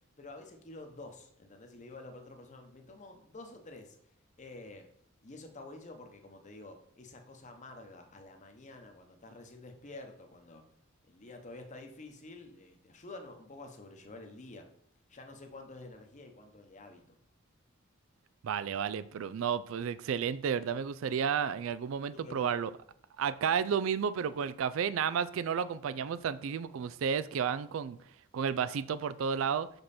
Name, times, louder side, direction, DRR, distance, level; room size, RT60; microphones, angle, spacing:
voice 1, 0.2-4.0 4.4-4.9 5.2-10.6 11.1-14.7 15.1-17.2 22.1-22.5, left 2 dB, 35° left, 5 dB, 0.9 m, -49 dB
voice 2, 18.4-22.7 23.2-28.0 28.3-29.7, right 7 dB, 70° right, 15 dB, 0.3 m, -32 dB
6.0 x 5.3 x 4.2 m, 0.68 s
head